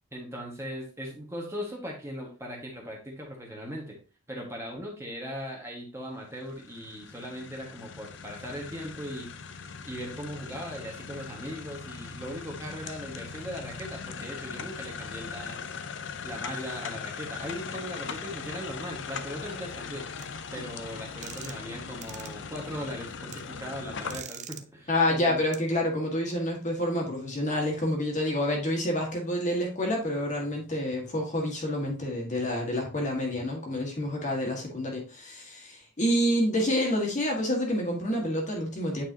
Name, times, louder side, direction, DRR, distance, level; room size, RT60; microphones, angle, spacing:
voice 1, 0.1-4.0 4.3-9.3 9.9-15.6 16.2-20.1 20.5-25.4, equal, 15° right, -2 dB, 1.6 m, -39 dB
sound 1, 6.2-24.2, left 5 dB, 60° left, 0.6 m, -40 dB
sound 2, 20.2-20.3 21.2-21.7 22.0-22.3 23.3-23.4 24.1-24.6 25.5-25.6, right 10 dB, 35° right, 0.5 m, -42 dB
voice 2, 24.9-39.0, left 1 dB, 35° left, 0 dB, 1.7 m, -28 dB
8.7 x 4.6 x 2.8 m, 0.34 s
head